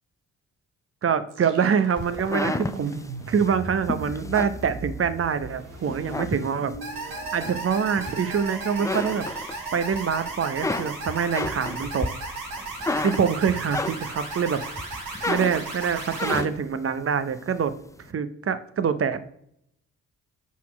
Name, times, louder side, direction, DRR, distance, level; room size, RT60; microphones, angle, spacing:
voice 1, 1.0-3.0 3.3-6.8 7.3-9.3 9.7-12.1 13.0-14.6 15.3-17.7 18.1-19.2, right 7 dB, 40° right, 12 dB, 0.8 m, -25 dB
sound 1, 1.3-11.1, right 2 dB, 90° right, 1.1 m, -40 dB
sound 2, 2.0-5.4 5.8-6.9 7.4-8.4 8.7-10.0 10.3-14.3 14.8-16.7, left 2 dB, 10° left, 0.4 m, -31 dB
sound 3, 6.8-16.4, right 3 dB, 75° right, 1.7 m, -35 dB
5.6 x 4.3 x 6.0 m, 0.72 s
hypercardioid pair, 40°, 37 cm